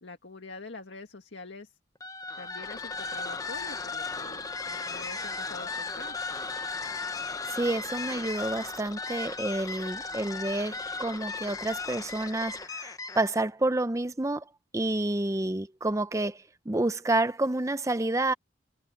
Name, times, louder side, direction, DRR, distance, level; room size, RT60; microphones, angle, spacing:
voice 1, 0.0-1.8 2.4-6.2, left 3 dB, 80° left, 1.9 m, -45 dB
sound 1, 2.0-13.4, left 4 dB, 20° left, 0.8 m, -36 dB
voice 2, 7.5-14.4 14.7-18.3, right 2 dB, 15° right, 0.6 m, -29 dB
head